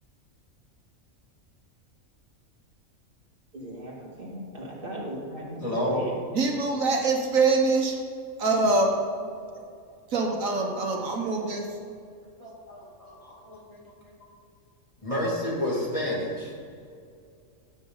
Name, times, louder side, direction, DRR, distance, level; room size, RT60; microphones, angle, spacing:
voice 1, 3.5-6.2, equal, 40° right, -4 dB, 2.6 m, -38 dB
voice 2, 5.6-6.1 12.4-14.2 15.0-16.5, left 1 dB, 25° left, -5 dB, 2.6 m, -30 dB
voice 3, 6.3-8.0 8.4-8.9 10.1-11.7, right 3 dB, 75° right, 1 dB, 1.7 m, -24 dB
16.0 x 7.7 x 4.0 m, 2.4 s
omnidirectional pair, 1.4 m